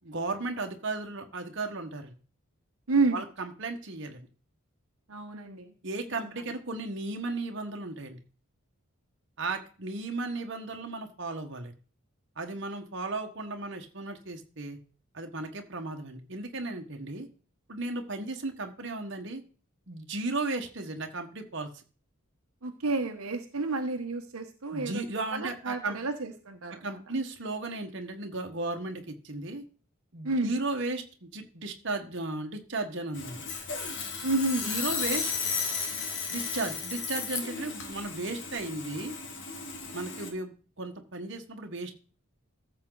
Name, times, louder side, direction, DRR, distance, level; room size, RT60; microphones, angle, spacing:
voice 1, 0.0-2.1 3.1-4.2 5.8-8.2 9.4-11.7 12.4-14.8 15.1-17.3 17.7-19.4 19.9-21.8 24.7-26.0 26.8-29.6 30.1-33.4 34.6-35.3 36.3-39.1 39.9-42.0, right 2 dB, 55° right, 3 dB, 1.4 m, -35 dB
voice 2, 2.9-3.2 5.1-5.7 22.6-25.0 25.3-26.9 30.2-30.5 34.2-34.7, right 3 dB, 75° right, 4 dB, 1.1 m, -30 dB
Sawing, 33.1-40.3, left 5 dB, 55° left, 1.8 m, -34 dB
14.0 x 7.0 x 4.0 m, 0.39 s
head